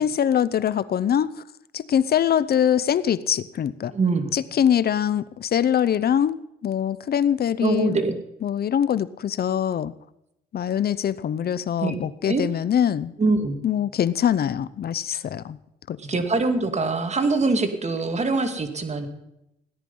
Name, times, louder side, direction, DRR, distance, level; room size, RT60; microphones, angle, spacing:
voice 1, 0.0-1.3 1.7-3.9 4.3-8.0 8.4-9.9 10.5-13.1 13.6-15.6 15.9-16.0, left 9 dB, 50° left, 17 dB, 0.7 m, -23 dB
voice 2, 3.9-4.3 7.6-8.2 11.8-12.4 13.2-13.6 16.0-19.1, right 3 dB, 35° right, 7 dB, 2.2 m, -23 dB
17.0 x 10.5 x 5.5 m, 0.86 s
cardioid pair, 90°, 20 cm